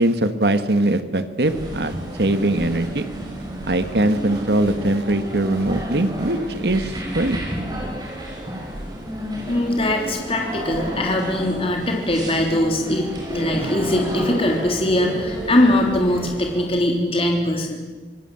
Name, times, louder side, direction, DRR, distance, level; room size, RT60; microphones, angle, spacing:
voice 1, 0.0-1.9 2.2-3.1 3.7-7.4, right 1 dB, 65° right, 10 dB, 1.7 m, -21 dB
sound 1, 1.4-16.7, right 1 dB, 20° right, 5.7 m, -32 dB
voice 2, 9.4-17.8, left 1 dB, 30° left, 2 dB, 3.5 m, -21 dB
25.5 x 19.5 x 7.9 m, 1.3 s
head